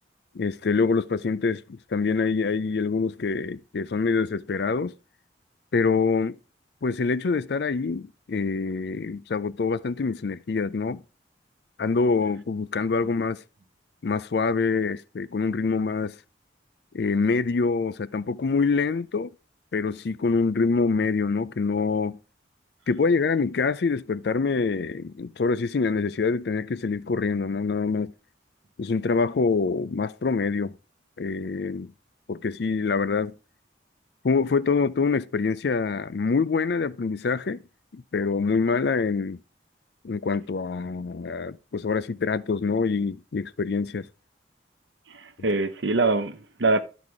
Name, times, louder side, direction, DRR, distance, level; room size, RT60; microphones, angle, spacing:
voice 1, 0.3-4.9 5.7-6.4 6.8-11.0 11.8-13.4 14.0-16.1 16.9-19.3 19.7-22.2 22.9-28.1 28.8-30.7 31.2-31.9 32.3-33.3 34.2-37.6 37.9-39.4 40.0-44.1, left 4 dB, 60° left, 0.4 m, -25 dB
voice 2, 45.1-46.8, right 3 dB, 80° right, 0.9 m, -24 dB
12.0 x 4.1 x 4.8 m
head